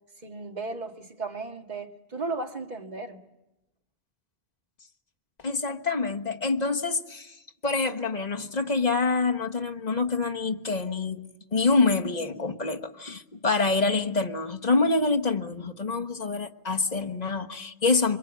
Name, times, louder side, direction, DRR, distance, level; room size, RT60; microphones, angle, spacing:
voice 1, 0.2-3.2, right 3 dB, 45° right, 1.8 m, -35 dB
voice 2, 5.4-7.3 7.6-18.2, left 3 dB, 45° left, 1.3 m, -26 dB
26.5 x 23.5 x 8.1 m
omnidirectional pair, 1.0 m